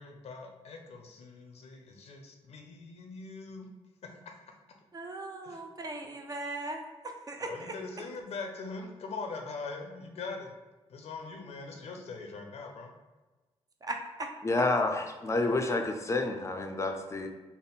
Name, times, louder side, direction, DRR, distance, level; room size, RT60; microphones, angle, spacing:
voice 1, 0.0-3.7 5.4-5.6 7.4-10.6 10.9-12.9, left 4 dB, 70° left, 3 dB, 0.6 m, -42 dB
voice 2, 4.9-7.8 13.8-14.3, right 2 dB, 35° right, 3 dB, 0.5 m, -38 dB
voice 3, 14.4-17.3, left 2 dB, 25° left, 5 dB, 0.5 m, -29 dB
3.6 x 2.1 x 4.0 m, 1.2 s
cardioid pair, 85°, 11 cm